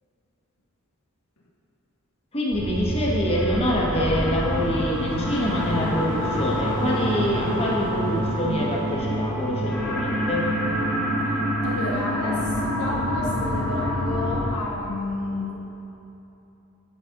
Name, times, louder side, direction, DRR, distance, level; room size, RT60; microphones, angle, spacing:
voice 1, 2.3-10.5, equal, 30° left, -4 dB, 1.4 m, -25 dB
sound 1, 2.5-14.5, equal, 5° left, 1.3 m, -26 dB
sound 2, 2.9-11.3 11.7-11.8, right 1 dB, 40° right, 1.1 m, -42 dB
voice 2, 11.6-15.5, left 2 dB, 90° left, -3 dB, 1.2 m, -31 dB
9.8 x 5.3 x 5.2 m, 3.0 s
head